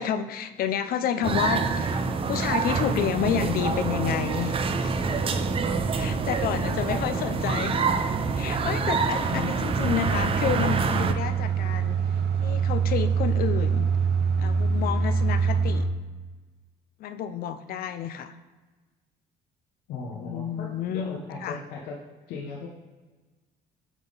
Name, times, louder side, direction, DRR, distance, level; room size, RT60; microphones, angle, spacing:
voice 1, 0.0-4.5 4.8-5.0 5.9-7.8 8.3-12.0 12.4-13.9 14.4-15.9 17.0-18.3 20.1-21.6, left 9 dB, 65° left, 11 dB, 0.5 m, -30 dB
sound 1, 1.2-11.1, right 4 dB, 35° right, 0.5 m, -26 dB
voice 2, 6.5-7.6 9.3-9.5 19.9-22.0 22.3-22.7, left 4 dB, 85° left, -1 dB, 0.9 m, -37 dB
sound 2, 9.8-15.9, right 5 dB, 80° right, 0.8 m, -25 dB
8.0 x 3.6 x 4.0 m, 1.3 s
cardioid pair, 110°, 17 cm